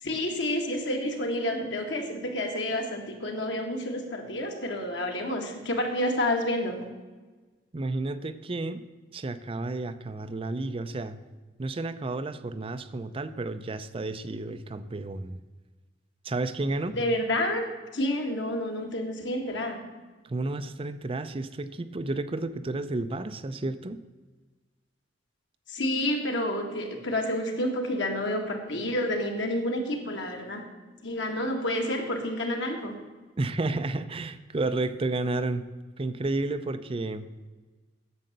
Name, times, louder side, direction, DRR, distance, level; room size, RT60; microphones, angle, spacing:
voice 1, 0.0-6.8 16.9-17.7 17.9-19.8 25.7-30.6 31.0-33.0, left 1 dB, 90° left, 2 dB, 1.8 m, -29 dB
voice 2, 7.7-8.8 9.1-11.2 11.6-15.4 16.2-17.0 20.2-24.0 33.4-35.7 36.0-37.3, right 2 dB, 30° right, 11 dB, 0.5 m, -31 dB
9.6 x 7.5 x 6.6 m, 1.3 s
head